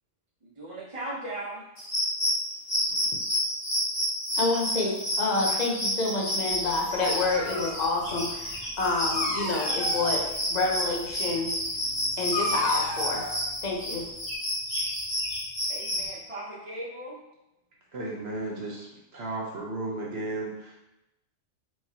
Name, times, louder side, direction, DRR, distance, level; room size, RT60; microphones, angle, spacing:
voice 1, 0.4-1.6 5.4-5.6 15.7-17.2, right 1 dB, 30° right, -7 dB, 0.9 m, -38 dB
sound 1, 1.8-16.1, equal, 15° left, 1.6 m, -30 dB
voice 2, 4.4-4.9 5.2-10.2 10.5-11.5 12.2-13.3 13.6-14.1, left 3 dB, 45° left, -1 dB, 0.7 m, -28 dB
Dog, 6.5-14.3, left 2 dB, 80° left, 1.1 m, -36 dB
voice 3, 17.9-18.9 19.1-20.7, right 2 dB, 60° right, -3 dB, 1.0 m, -34 dB
4.6 x 3.0 x 2.8 m, 0.90 s
omnidirectional pair, 1.3 m